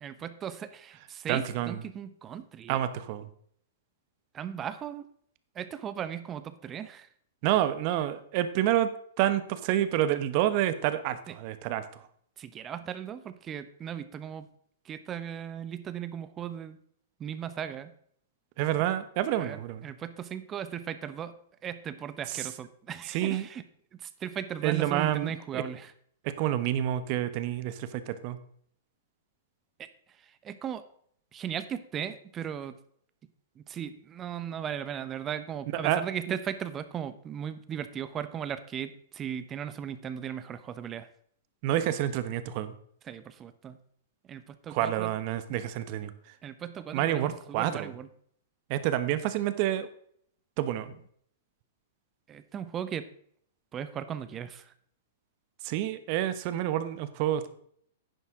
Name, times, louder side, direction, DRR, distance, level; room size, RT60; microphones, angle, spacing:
voice 1, 0.0-2.8 4.3-5.0 5.5-7.1 11.3-11.4 12.4-14.5 14.8-16.8 17.2-17.9 19.4-21.4 21.6-23.7 23.9-25.9 29.8-30.8 31.3-32.8 33.6-41.1 43.0-43.8 44.3-45.1 46.4-48.1 52.3-53.1 53.7-54.7, right 9 dB, 25° right, 12 dB, 0.9 m, -37 dB
voice 2, 1.3-1.8 2.7-3.3 7.4-8.9 9.2-11.8 18.6-19.8 23.1-23.5 24.6-25.3 25.5-25.6 26.4-28.4 35.8-36.0 36.3-36.4 41.6-42.7 44.7-46.1 46.9-47.9 48.7-49.9 50.6-50.9 55.6-57.5, right 12 dB, 45° right, 12 dB, 1.1 m, -28 dB
11.0 x 9.5 x 3.8 m, 0.64 s
hypercardioid pair, 115°, 0 cm